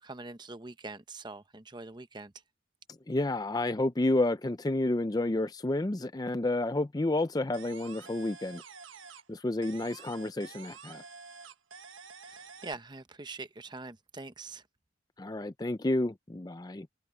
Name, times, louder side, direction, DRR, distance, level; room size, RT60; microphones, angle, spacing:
voice 1, 0.0-2.3 12.2-14.6, right 3 dB, 20° right, 0.8 m, -44 dB
voice 2, 3.1-8.6 9.3-11.0 15.2-16.9, left 2 dB, 20° left, 0.5 m, -30 dB
sound 1, 7.5-9.4 9.6-12.7, right 5 dB, 80° right, 1.4 m, -49 dB
open air
head